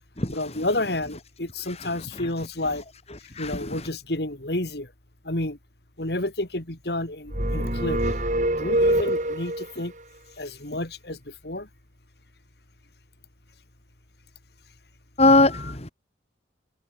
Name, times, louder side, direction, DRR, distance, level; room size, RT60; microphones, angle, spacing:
voice 1, 0.3-2.8 3.4-4.9 5.2-5.6 6.0-8.0 8.6-9.9 10.4-11.7 15.5-15.7, left 1 dB, 60° left, 3.2 m, -30 dB
voice 2, 3.4-3.9 15.2-15.9, left 2 dB, 35° left, 3.5 m, -21 dB
sound 1, 7.3-9.7, right 1 dB, 40° right, 6.9 m, -24 dB
head